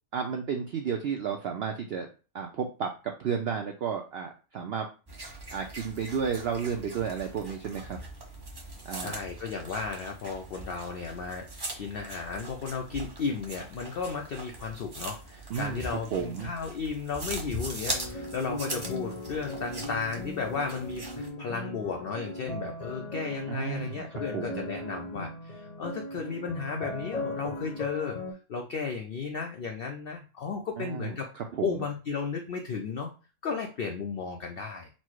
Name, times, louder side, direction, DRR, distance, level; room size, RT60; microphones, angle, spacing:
voice 1, 0.1-2.1 2.3-4.9 5.5-8.0 8.8-9.2 15.5-16.5 23.5-24.7 30.8-31.9, right 6 dB, 80° right, 3 dB, 0.5 m, -32 dB
sound 1, 5.1-21.3, right 1 dB, 25° right, 0.5 m, -41 dB
voice 2, 9.0-28.2 28.5-31.3 31.6-33.1 33.4-34.9, left 5 dB, 85° left, 3 dB, 0.5 m, -34 dB
sound 2, 17.9-28.3, left 1 dB, 40° left, 0.6 m, -38 dB
4.3 x 2.1 x 4.5 m, 0.34 s
omnidirectional pair, 1.6 m